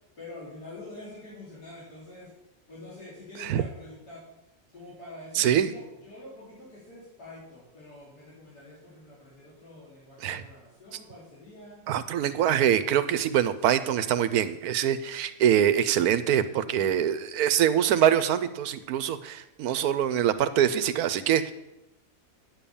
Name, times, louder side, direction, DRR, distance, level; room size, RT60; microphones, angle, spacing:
voice 1, 0.2-2.3 2.7-4.3 4.7-11.8, left 1 dB, 80° left, -9 dB, 4.0 m, -46 dB
voice 2, 5.3-5.7 10.2-10.4 11.9-21.5, right 10 dB, 75° right, 13 dB, 1.2 m, -24 dB
9.8 x 7.3 x 7.0 m, 0.91 s
omnidirectional pair, 1.7 m